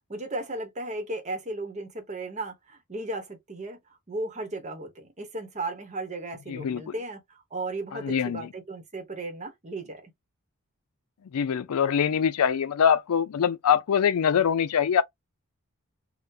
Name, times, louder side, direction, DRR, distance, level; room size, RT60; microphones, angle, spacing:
voice 1, 0.1-3.8 4.1-10.1, right 2 dB, 30° right, 0.9 m, -35 dB
voice 2, 6.5-6.8 7.9-8.5 11.3-15.0, left 7 dB, 85° left, 0.4 m, -23 dB
3.7 x 2.1 x 2.6 m
head